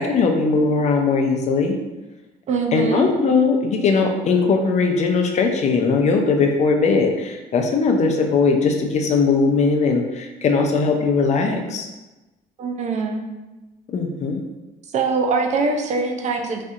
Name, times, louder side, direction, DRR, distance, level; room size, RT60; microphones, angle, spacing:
voice 1, 0.0-1.8 2.7-11.9 13.9-14.4, left 4 dB, 45° left, 3 dB, 0.5 m, -19 dB
voice 2, 2.5-3.1 12.6-13.2 14.9-16.6, right 4 dB, 45° right, 3 dB, 0.5 m, -22 dB
4.2 x 2.7 x 2.4 m, 1.1 s
cardioid pair, 110°, 17 cm